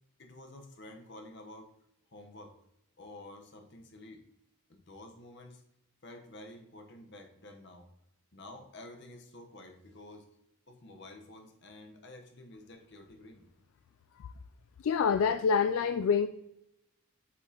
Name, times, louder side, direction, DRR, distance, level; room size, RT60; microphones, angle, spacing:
voice 1, 0.2-1.7 2.1-2.5 3.0-4.2 4.7-5.6 6.0-7.9 8.3-10.3 10.7-13.4, left 1 dB, 55° left, 3 dB, 1.0 m, -50 dB
voice 2, 14.8-16.3, left 6 dB, 75° left, 10 dB, 0.3 m, -26 dB
8.3 x 5.3 x 2.9 m, 0.82 s
head